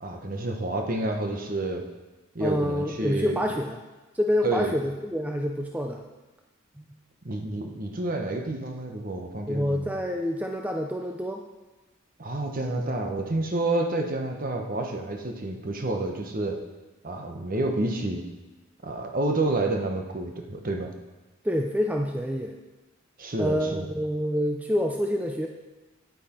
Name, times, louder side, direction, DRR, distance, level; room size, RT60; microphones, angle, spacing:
voice 1, 0.0-1.8 2.3-3.4 4.4-4.7 7.2-9.9 12.2-16.6 17.0-18.2 18.8-20.9 23.2-23.9, right 2 dB, 45° right, 3 dB, 1.1 m, -29 dB
voice 2, 2.4-3.8 4.1-6.0 6.8-7.0 9.5-11.5 21.4-22.6 23.4-25.5, equal, 10° right, 2 dB, 0.5 m, -27 dB
9.5 x 9.1 x 4.4 m, 1.1 s
head